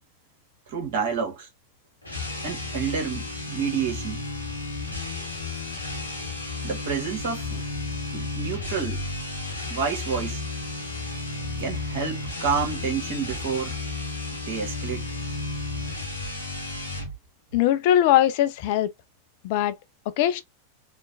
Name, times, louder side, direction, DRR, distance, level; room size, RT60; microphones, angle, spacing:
voice 1, 0.7-1.5 2.4-4.2 6.6-7.6 8.1-9.0 9.7-10.4 11.6-13.8 14.5-15.1, right 6 dB, 50° right, 1.2 m, -29 dB
sound 1, 2.0-17.2, left 3 dB, 85° left, 1.0 m, -33 dB
voice 2, 17.5-18.9 19.4-19.8 20.2-20.4, left 12 dB, 50° left, 0.4 m, -21 dB
3.0 x 2.1 x 2.6 m
figure-of-eight pair, 90°, 0 cm